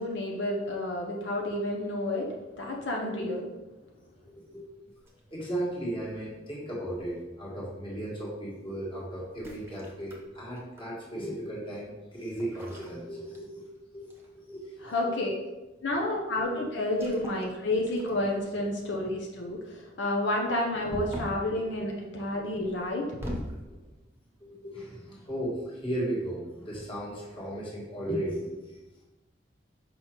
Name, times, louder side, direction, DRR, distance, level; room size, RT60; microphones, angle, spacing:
voice 1, 0.0-3.5 14.8-15.3 15.8-23.1, left 1 dB, 70° left, -1 dB, 0.8 m, -30 dB
sound 1, 5.0-5.7 6.9-7.3 9.3-11.0 12.4-13.8 14.1-14.4 16.9-17.5 17.9-18.4 20.9-21.5 22.7-23.6, equal, 15° right, 0.9 m, -41 dB
voice 2, 5.3-13.7 13.9-15.2 16.0-16.7 17.4-17.5 19.1-19.2 22.3-22.4 23.6-23.8 24.4-28.8, right 1 dB, 30° left, -4 dB, 1.7 m, -36 dB
6.2 x 5.0 x 3.0 m, 1.1 s
head